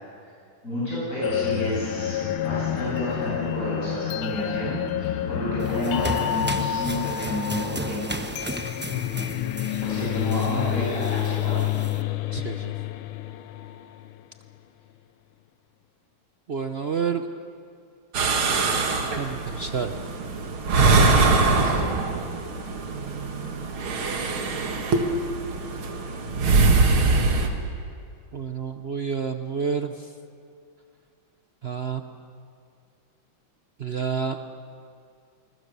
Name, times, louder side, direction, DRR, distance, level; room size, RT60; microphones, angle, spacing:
voice 1, 0.6-8.2 9.8-11.7, equal, 40° left, -8 dB, 8.3 m, -30 dB
sound 1, 1.2-14.2, left 12 dB, 85° left, 1.6 m, -29 dB
sound 2, 5.6-12.0, right 1 dB, 15° right, 0.4 m, -35 dB
voice 2, 12.3-12.7 16.5-17.3 19.2-19.9 21.6-21.9 22.9-23.7 28.3-30.1 31.6-32.0 33.8-34.4, right 6 dB, 60° right, 7 dB, 0.6 m, -30 dB
sound 3, 18.1-27.5, right 3 dB, 85° right, 2.6 m, -22 dB
28.0 x 22.0 x 6.8 m, 2.4 s
omnidirectional pair, 2.2 m